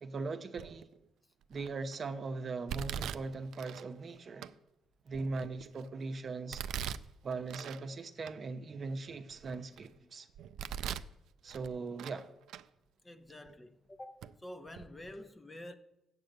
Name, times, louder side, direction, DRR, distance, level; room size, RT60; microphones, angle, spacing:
voice 1, 0.0-0.9 1.5-4.5 5.1-6.6 7.2-10.3 11.4-12.3, right 3 dB, 45° right, 0.8 m, -40 dB
Domestic sounds home sounds, 0.6-1.0 1.5-2.0 2.7-3.9 4.4-4.5 5.1-5.9 6.5-7.8 8.2-8.3 8.9-9.9 10.3-11.1 11.5-12.2 12.5-12.6 13.5-13.6 14.2-14.3 14.7-14.8, right 9 dB, 80° right, 0.3 m, -41 dB
voice 2, 13.0-15.8, left 1 dB, 20° left, 0.8 m, -48 dB
7.8 x 7.6 x 7.8 m
cardioid pair, 90°, 0 cm